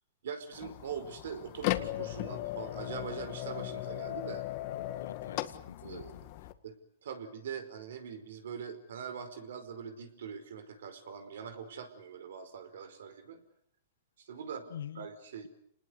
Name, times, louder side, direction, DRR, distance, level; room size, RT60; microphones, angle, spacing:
voice 1, 0.2-4.4 5.8-6.3 6.6-6.7 7.0-13.4 14.3-14.7 14.9-15.5, right 7 dB, 75° right, 4.9 m, -42 dB
sound 1, 0.5-6.5, left 16 dB, 45° left, 1.8 m, -37 dB
voice 2, 4.7-6.0 14.7-15.1, left 9 dB, 85° left, 1.1 m, -45 dB
28.5 x 20.0 x 8.1 m
hypercardioid pair, 145°, 0 cm